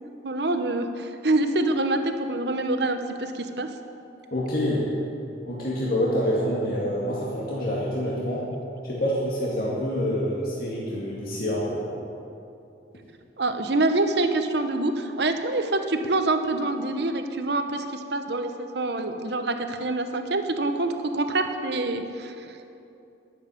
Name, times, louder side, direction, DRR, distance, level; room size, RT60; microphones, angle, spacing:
voice 1, 0.2-3.7 13.4-22.7, right 2 dB, 60° right, 7 dB, 1.0 m, -26 dB
voice 2, 4.3-4.9 5.5-8.5 8.8-11.8, equal, 50° left, -6 dB, 2.1 m, -27 dB
11.0 x 8.0 x 9.9 m, 2.7 s
head